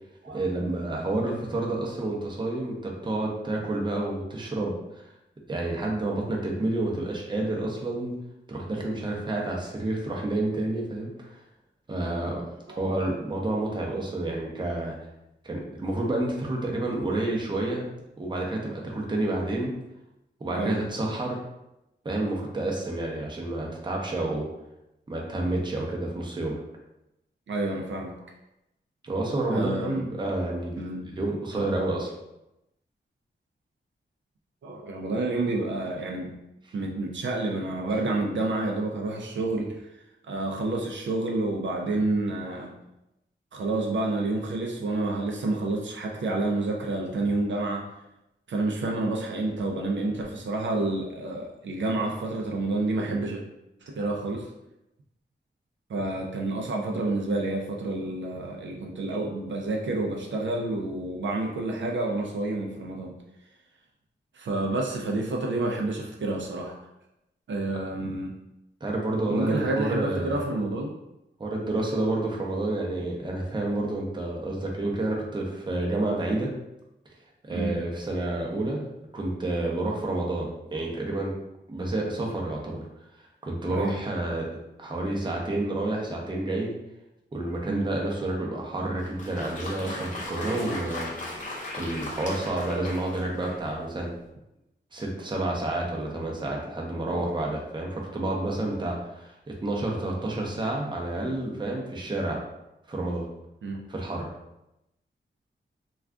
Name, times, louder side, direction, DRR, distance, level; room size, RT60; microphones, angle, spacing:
voice 1, 0.3-5.1 5.5-8.1 8.5-11.4 11.9-12.4 12.8-14.9 15.4-17.8 18.2-19.7 20.4-21.3 22.0-24.5 25.1-26.6 29.0-32.1 67.7-67.8 68.8-70.3 71.4-76.5 77.4-81.3 81.7-82.8 83.4-84.5 84.8-86.7 87.3-91.1 91.7-94.1 94.9-102.4 102.9-103.3 103.9-104.3, right 2 dB, 25° right, -2 dB, 0.6 m, -29 dB
voice 2, 27.5-28.2 29.5-30.0 30.8-31.0 31.5-31.8 34.6-36.4 36.7-39.9 40.3-42.7 43.5-47.9 48.5-53.4 53.9-54.5 55.9-63.1 64.3-66.8 67.5-68.3 69.3-71.0 77.5-77.8 83.7-84.0 87.6-87.9 103.6-103.8, right 2 dB, 75° right, 0 dB, 0.5 m, -29 dB
Applause, 88.9-93.8, left 2 dB, 40° left, 0.6 m, -37 dB
2.4 x 2.3 x 3.4 m, 0.89 s
wide cardioid pair, 110°, 19 cm